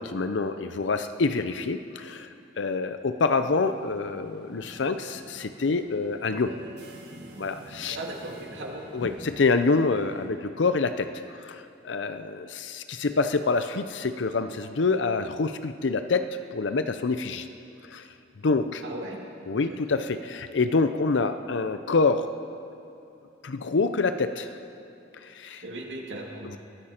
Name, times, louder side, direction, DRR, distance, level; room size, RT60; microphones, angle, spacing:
voice 1, 0.0-2.3 2.6-6.6 7.4-8.0 8.9-17.5 17.8-18.1 18.4-18.8 19.5-22.3 23.4-24.5 25.2-25.6, left 4 dB, 70° left, 10 dB, 0.6 m, -26 dB
sound 1, 3.3-10.3, right 1 dB, 65° right, 1.9 m, -46 dB
voice 2, 7.9-8.8 18.8-19.2 19.5-19.8 25.6-26.5, right 2 dB, 80° right, 0 dB, 2.4 m, -37 dB
21.0 x 13.5 x 4.4 m, 2.8 s
head